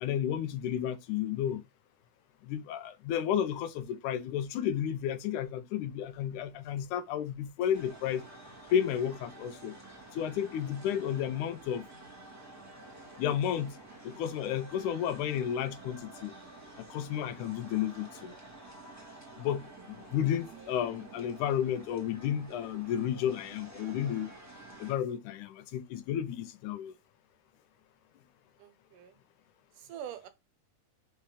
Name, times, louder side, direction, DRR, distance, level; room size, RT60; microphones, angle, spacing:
voice 1, 0.0-1.6 2.5-8.2 8.7-9.8 10.1-11.9 13.2-13.8 14.0-16.3 16.8-18.3 19.4-24.3 24.8-26.9, left 9 dB, 80° left, 2.1 m, -32 dB
sound 1, 7.7-24.9, right 2 dB, 10° right, 1.2 m, -50 dB
voice 2, 28.6-29.2 29.8-30.3, right 10 dB, 80° right, 2.5 m, -45 dB
5.7 x 4.1 x 4.9 m
omnidirectional pair, 3.6 m